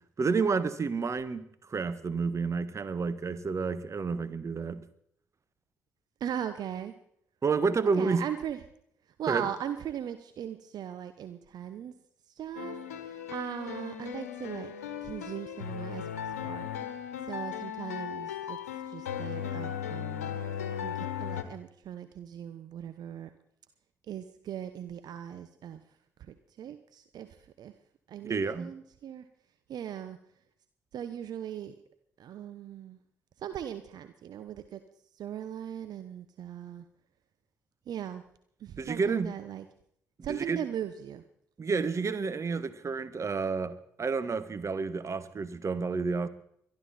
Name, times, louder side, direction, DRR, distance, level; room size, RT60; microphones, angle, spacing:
voice 1, 0.2-1.4 1.7-4.8 7.4-8.2 9.3-9.5 28.2-28.7 38.8-39.3 40.3-40.6 41.6-46.3, right 4 dB, 40° right, 13 dB, 1.5 m, -30 dB
voice 2, 6.2-6.9 7.9-8.6 9.2-11.9 12.3-14.7 15.0-16.0 16.4-16.7 17.2-18.6 18.9-20.4 20.8-23.3 24.1-25.8 26.2-27.7 28.1-29.2 29.7-30.2 30.9-31.7 32.2-33.0 33.4-34.8 35.1-36.8 37.9-38.2 38.6-39.6 40.2-41.2, right 9 dB, 60° right, 10 dB, 1.0 m, -39 dB
sound 1, 12.6-21.4, left 9 dB, 85° left, 1.1 m, -37 dB
22.5 x 12.0 x 4.4 m, 0.69 s
hypercardioid pair, 45°, 8 cm